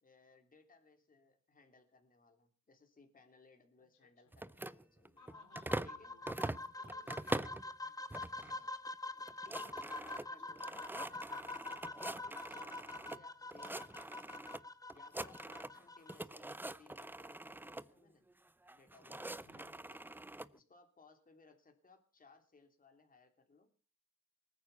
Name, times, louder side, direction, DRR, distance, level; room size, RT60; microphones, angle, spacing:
voice 1, 0.0-5.2 5.8-6.2 8.4-8.8 9.4-11.8 12.2-14.6 14.9-18.3 18.7-20.2 20.5-23.7, left 3 dB, 30° left, 5 dB, 3.1 m, -64 dB
sound 1, 4.3-6.0 6.3-7.7 8.1-8.5 8.9-9.0 9.2-13.2 13.5-14.6 14.9-15.8 16.1-17.9 18.7-20.5, right 1 dB, 5° right, 0.7 m, -43 dB
voice 2, 5.1-8.3 10.4-10.6 13.0-13.5 19.4-20.0, left 5 dB, 80° left, 5 dB, 4.0 m, -67 dB
sound 2, 5.2-16.1, left 2 dB, 10° left, 1.0 m, -46 dB
20.0 x 9.6 x 6.9 m, 0.41 s
cardioid pair, 90°, 30 cm